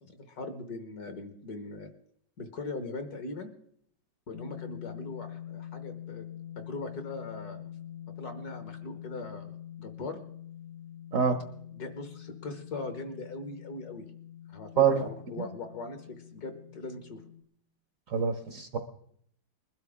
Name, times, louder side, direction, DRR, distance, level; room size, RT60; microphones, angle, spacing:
voice 1, 0.0-1.9 2.4-3.5 4.3-6.2 6.6-7.7 8.2-10.2 11.7-14.1 14.5-17.2, left 3 dB, 60° left, 7 dB, 1.7 m, -40 dB
sound 1, 4.3-17.4, left 10 dB, 90° left, 2.0 m, -45 dB
voice 2, 14.8-15.1 15.4-15.5 18.1-18.8, right 7 dB, 55° right, 7 dB, 1.0 m, -25 dB
21.0 x 12.0 x 3.6 m, 0.67 s
omnidirectional pair, 2.0 m